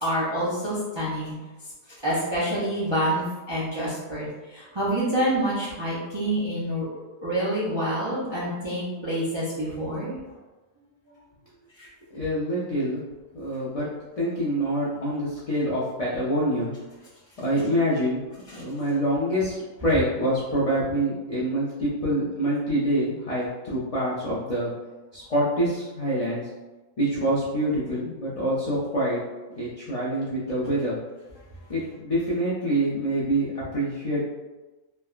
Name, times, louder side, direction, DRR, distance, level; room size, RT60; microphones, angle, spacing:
voice 1, 0.0-1.3 2.0-6.8 7.2-10.1 11.8-11.9 14.3-14.4, right 1 dB, 45° right, -8 dB, 0.3 m, -27 dB
voice 2, 12.1-13.0 13.3-13.9 14.2-16.7 17.4-18.2 18.5-24.7 25.1-26.4 27.0-29.2 29.6-31.0 31.7-34.2, right 1 dB, 50° left, -8 dB, 0.4 m, -26 dB
3.2 x 2.2 x 2.3 m, 1.2 s
omnidirectional pair, 1.4 m